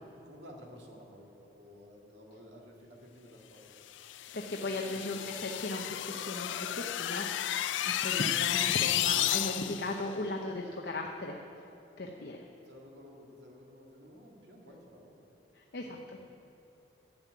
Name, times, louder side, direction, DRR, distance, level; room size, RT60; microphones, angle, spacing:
voice 1, 0.2-3.7 4.0-4.4 4.7-5.3 6.0-7.2 10.6-10.7 12.5-15.2 15.8-15.9, equal, 70° right, -1 dB, 2.0 m, -53 dB
sound 1, 4.0-10.0, left 12 dB, 80° left, 0.4 m, -32 dB
voice 2, 4.3-7.5 7.8-11.4 12.0-12.4 15.5-16.0, left 2 dB, 55° left, 1 dB, 0.7 m, -37 dB
10.5 x 7.5 x 9.2 m, 2.8 s
head